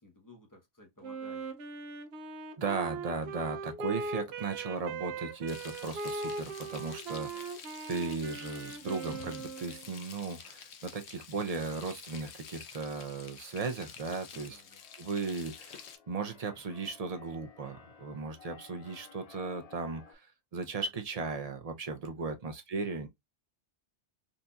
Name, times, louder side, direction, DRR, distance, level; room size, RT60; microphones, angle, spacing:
voice 1, 0.0-1.5 7.3-7.5 14.3-14.8 22.0-22.3, left 1 dB, 20° left, 0.8 m, -57 dB
Wind instrument woodwind instrument, 1.0-9.9, right 3 dB, 70° right, 0.8 m, -40 dB
voice 2, 2.6-7.6 7.9-14.6 15.0-23.1, right 4 dB, 45° right, 0.5 m, -36 dB
Frying (food), 5.5-16.0, left 7 dB, 80° left, 0.9 m, -49 dB
Keyboard (musical), 14.3-20.1, left 6 dB, 55° left, 0.4 m, -56 dB
3.9 x 2.6 x 2.2 m
omnidirectional pair, 1.1 m